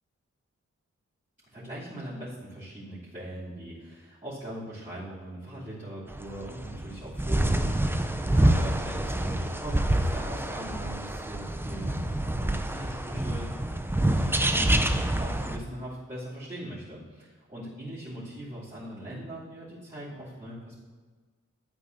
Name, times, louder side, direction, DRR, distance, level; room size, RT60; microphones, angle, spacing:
voice 1, 1.5-13.5 14.1-14.9 15.2-20.8, right 1 dB, 25° right, -13 dB, 3.1 m, -41 dB
sound 1, 6.1-15.6, right 1 dB, 10° right, 0.5 m, -27 dB
13.5 x 8.4 x 2.7 m, 1.4 s
wide cardioid pair, 105°, 29 cm